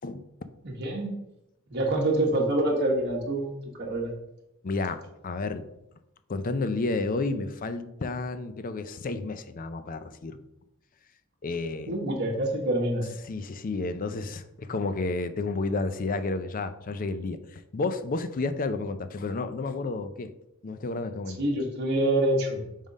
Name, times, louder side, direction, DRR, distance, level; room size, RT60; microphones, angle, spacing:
voice 1, 0.6-1.1 1.7-3.5 3.8-4.1 11.9-13.1 21.4-22.9, right 1 dB, 55° right, -1 dB, 1.3 m, -26 dB
voice 2, 4.6-5.6 6.3-10.4 11.4-11.9 13.3-20.3 20.6-21.4, left 3 dB, 40° left, 10 dB, 0.5 m, -31 dB
5.4 x 3.7 x 5.3 m, 0.85 s
head